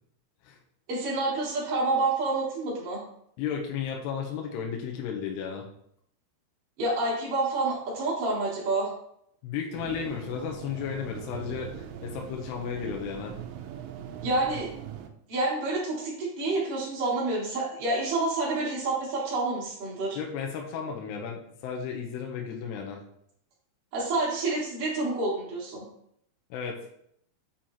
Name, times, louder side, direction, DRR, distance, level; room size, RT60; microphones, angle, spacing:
voice 1, 0.9-3.0 6.8-8.9 14.2-14.7 15.3-20.2 23.9-25.9, right 2 dB, 45° right, -6 dB, 2.2 m, -28 dB
voice 2, 3.4-5.7 9.4-13.4 20.2-23.0 26.5-26.8, left 7 dB, 80° left, 1 dB, 2.7 m, -34 dB
sound 1, 9.7-15.1, right 10 dB, 85° right, 2.8 m, -41 dB
7.3 x 4.9 x 2.9 m, 0.70 s
omnidirectional pair, 5.1 m